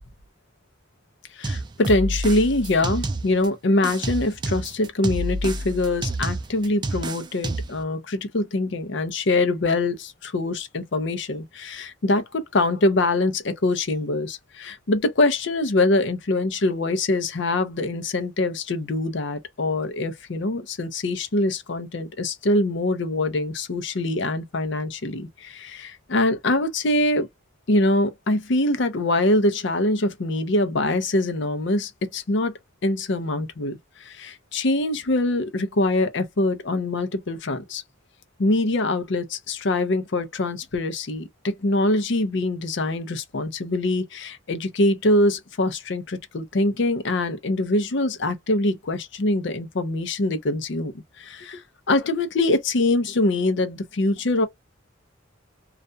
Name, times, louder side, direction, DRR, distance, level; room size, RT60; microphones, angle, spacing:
voice 1, 1.3-27.3 27.7-32.5 32.8-37.8 38.4-50.9 51.2-54.5, left 2 dB, 65° left, 0.6 m, -24 dB
sound 1, 1.4-3.5 3.8-7.8, right 2 dB, 25° right, 0.3 m, -29 dB
2.4 x 2.1 x 2.6 m
head